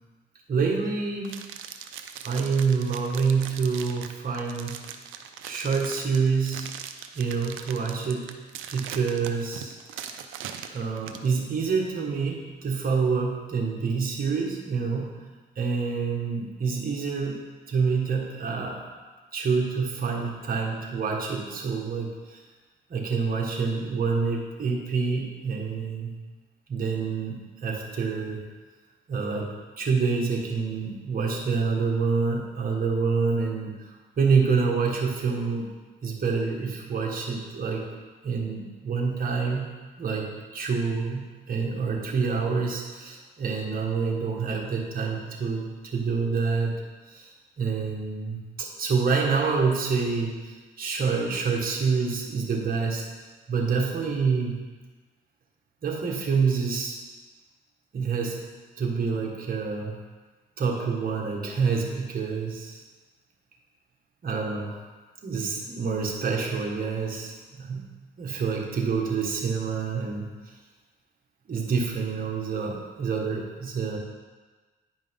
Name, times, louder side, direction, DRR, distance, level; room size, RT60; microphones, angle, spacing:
voice 1, 0.5-1.5 2.2-4.8 5.4-6.7 7.1-8.3 8.7-9.7 10.7-15.1 15.5-17.4 17.7-18.8 19.3-22.4 22.9-26.1 26.7-28.4 29.1-33.9 34.2-35.7 36.0-37.9 38.2-39.6 40.0-46.7 47.1-53.1 53.5-54.6 55.8-57.0 57.9-58.4 58.8-60.0 60.6-62.8 64.2-64.7 65.2-67.9 68.2-70.5 71.5-74.0, right 5 dB, 45° right, -1 dB, 1.7 m, -27 dB
sound 1, 1.2-11.3, right 9 dB, 85° right, 0.6 m, -40 dB
9.9 x 5.2 x 3.7 m, 1.3 s
cardioid pair, 90°, 20 cm